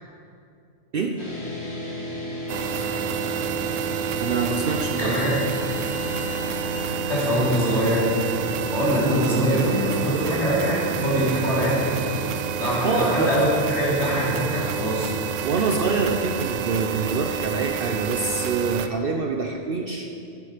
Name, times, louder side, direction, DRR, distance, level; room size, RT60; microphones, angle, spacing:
sound 1, 1.2-17.5, right 1 dB, 85° left, 2.9 m, -34 dB
sound 2, 2.5-18.9, right 8 dB, 75° right, 0.9 m, -29 dB
voice 1, 4.2-5.2 12.8-13.4 15.4-20.1, right 4 dB, 55° right, 3 dB, 0.8 m, -25 dB
voice 2, 5.0-5.3 7.1-8.1 8.7-12.0 12.6-15.1, equal, 60° left, -7 dB, 3.5 m, -23 dB
13.0 x 8.7 x 5.0 m, 2.6 s
omnidirectional pair, 1.3 m